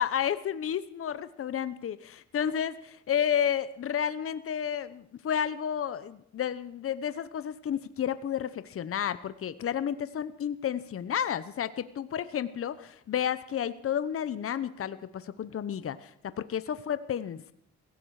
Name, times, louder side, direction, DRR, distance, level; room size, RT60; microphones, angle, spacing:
voice 1, 0.0-17.5, left 9 dB, 50° left, 14 dB, 0.9 m, -31 dB
17.0 x 16.0 x 4.9 m, 0.68 s
cardioid pair, 90°, 30 cm